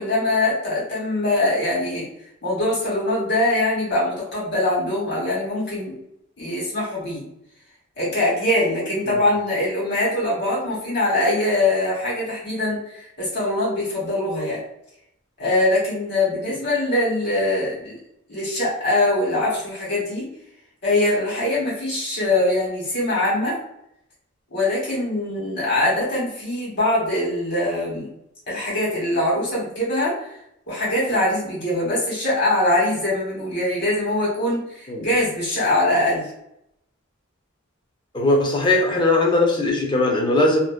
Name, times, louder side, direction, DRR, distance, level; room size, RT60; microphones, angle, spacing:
voice 1, 0.0-2.1 2.4-5.9 6.4-7.3 8.0-14.6 15.4-18.0 18.3-20.3 20.8-23.6 24.5-28.1 28.5-30.3 30.7-36.3, left 1 dB, 50° left, -6 dB, 1.2 m, -22 dB
voice 2, 38.1-40.6, left 2 dB, 20° left, 0 dB, 0.4 m, -19 dB
2.5 x 2.0 x 2.4 m, 0.77 s
head